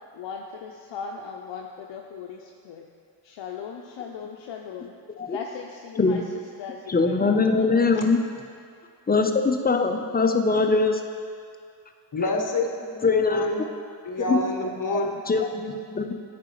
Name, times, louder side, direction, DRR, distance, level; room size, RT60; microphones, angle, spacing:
voice 1, 0.1-2.8 3.2-4.9 5.3-8.3, left 6 dB, 80° left, 1 dB, 0.6 m, -38 dB
voice 2, 6.9-8.2 9.1-11.0 13.0-13.7 14.2-14.4 14.9-15.0 15.3-16.1, left 4 dB, 20° left, 5 dB, 0.5 m, -22 dB
voice 3, 12.1-13.6 14.0-15.1, left 2 dB, 45° left, 2 dB, 1.0 m, -27 dB
9.4 x 5.1 x 3.1 m, 2.2 s
cardioid pair, 60°, 43 cm